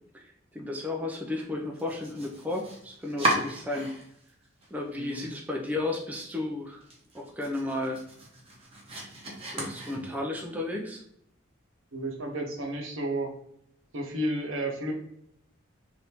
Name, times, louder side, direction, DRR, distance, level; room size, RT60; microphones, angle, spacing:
voice 1, 0.1-3.9 4.7-6.8 7.1-8.0 9.4-11.0, left 2 dB, 10° right, 0 dB, 0.3 m, -33 dB
Domestic sounds home sounds, 1.7-4.3 4.6-5.4 5.7-5.8 6.2-6.3 6.7-10.4, right 1 dB, 30° right, 0.7 m, -35 dB
voice 2, 4.9-5.3 11.9-13.3 13.9-14.9, right 1 dB, 70° right, 2 dB, 0.8 m, -32 dB
3.4 x 2.6 x 2.8 m, 0.72 s
head